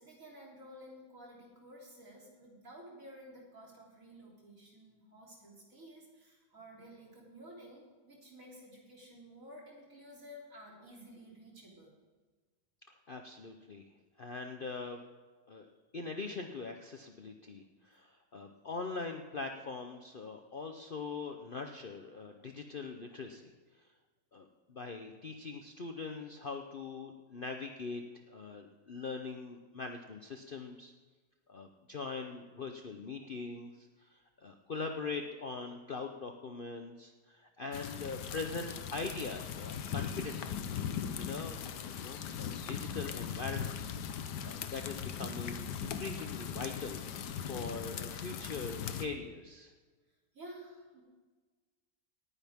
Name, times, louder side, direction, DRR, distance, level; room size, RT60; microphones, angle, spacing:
voice 1, 0.0-11.9 50.3-51.0, equal, 55° right, -3 dB, 3.8 m, -53 dB
voice 2, 13.1-13.8 14.2-15.0 15.5-15.7 15.9-23.5 24.3-28.0 28.3-30.9 31.5-40.6 41.2-43.8 44.4-47.0 47.5-49.7, left 4 dB, 45° left, 4 dB, 0.8 m, -42 dB
sound 1, 37.7-49.1, left 8 dB, 85° left, 1.5 m, -39 dB
18.5 x 10.0 x 3.6 m, 1.4 s
omnidirectional pair, 1.7 m